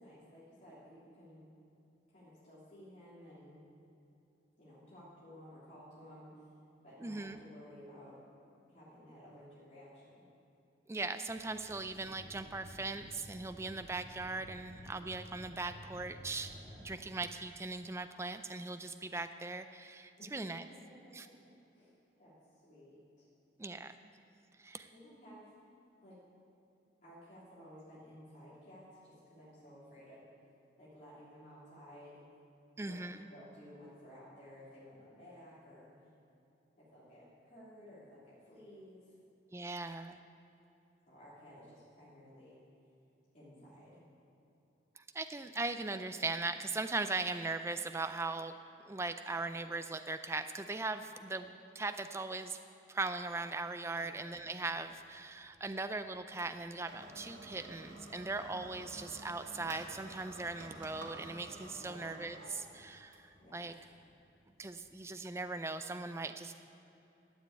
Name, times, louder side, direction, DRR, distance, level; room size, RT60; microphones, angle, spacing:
voice 1, 0.0-1.5 2.1-3.6 4.6-6.5 6.8-8.2 8.7-10.3 20.2-21.9 22.2-23.3 24.9-25.6 26.0-26.2 27.0-30.2 30.8-32.2 32.8-33.0 33.3-35.9 36.8-39.2 41.1-42.6 43.3-44.0 53.9-54.1 61.8-62.0 63.4-63.7, equal, 40° left, -10 dB, 3.2 m, -55 dB
voice 2, 7.0-7.4 10.9-16.5 16.8-20.6 21.2-21.3 23.6-24.0 24.6-24.9 32.8-33.2 39.5-40.2 45.0-48.5 48.9-52.6 52.9-63.7 64.6-66.5, right 3 dB, 15° right, 9 dB, 0.3 m, -39 dB
sound 1, 11.3-17.0, equal, 35° right, 1.6 m, -53 dB
sound 2, 54.4-65.4, right 1 dB, 80° right, 2.1 m, -52 dB
12.5 x 7.6 x 8.3 m, 2.8 s
head